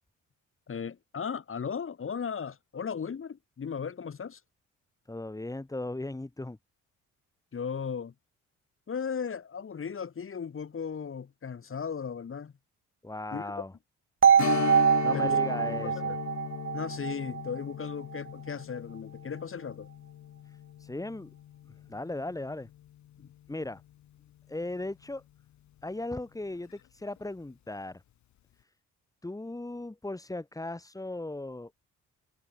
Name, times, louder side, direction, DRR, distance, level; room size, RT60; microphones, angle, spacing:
voice 1, 0.7-4.4 7.5-8.1 8.9-12.5 13.3-13.5 15.1-15.4 15.8-16.2 16.7-19.9 23.2-23.3, left 6 dB, 45° left, 6.6 m, -36 dB
voice 2, 5.1-6.6 13.0-13.7 15.0-16.1 20.5-21.3 21.7-22.7 23.5-23.8 24.5-25.2 25.8-28.0 29.2-31.7, left 2 dB, 10° left, 2.5 m, -37 dB
sound 1, 14.2-18.2, right 7 dB, 45° right, 1.6 m, -25 dB
Strum, 14.4-23.6 23.9-24.0 26.5-26.7 27.2-27.3, left 12 dB, 65° left, 1.5 m, -38 dB
cardioid pair, 90°, 30 cm